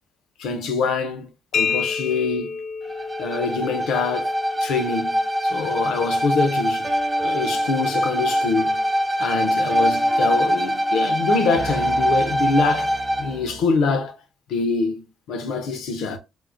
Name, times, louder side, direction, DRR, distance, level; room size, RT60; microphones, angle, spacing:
voice 1, 0.4-2.6 3.2-6.9 7.2-8.8 9.2-14.2 14.5-16.2, left 4 dB, 85° left, 0.7 m, -25 dB
sound 1, 1.5-9.1, left 5 dB, 45° left, 0.4 m, -32 dB
Bowed string instrument, 2.9-13.4, equal, 20° right, 0.5 m, -23 dB
sound 2, 6.8-13.8, right 4 dB, 40° right, 0.9 m, -37 dB
4.6 x 2.1 x 2.4 m
cardioid pair, 90°, 0 cm